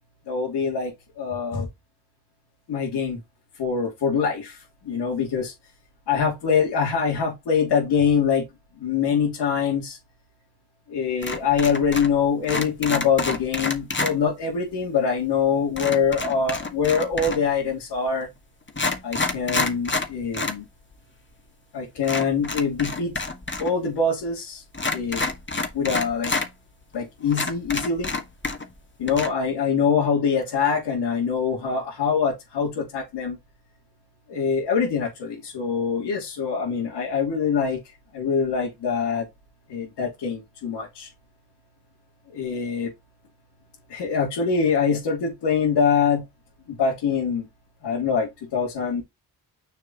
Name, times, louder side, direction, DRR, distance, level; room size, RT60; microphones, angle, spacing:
voice 1, 0.3-1.7 2.7-3.2 3.6-5.5 6.1-8.5 8.8-10.0 10.9-18.3 19.0-20.6 21.7-23.2 23.6-24.6 24.9-25.2 25.7-26.3 26.9-28.1 29.0-33.4 34.3-37.8 38.1-39.3 39.7-41.1 42.3-42.9 43.9-46.3 46.7-47.5 47.8-49.0, left 6 dB, 85° left, 3.1 m, -24 dB
sound 1, 11.2-12.2 12.4-14.1 15.8-17.5 18.2-18.3 18.7-20.6 20.9-21.0 22.0-23.7 24.0-24.1 24.7-26.5 26.9-27.0 27.3-28.8 29.1-29.3, left 3 dB, 30° left, 1.8 m, -28 dB
6.7 x 4.7 x 4.0 m
cardioid pair, 55°, 40 cm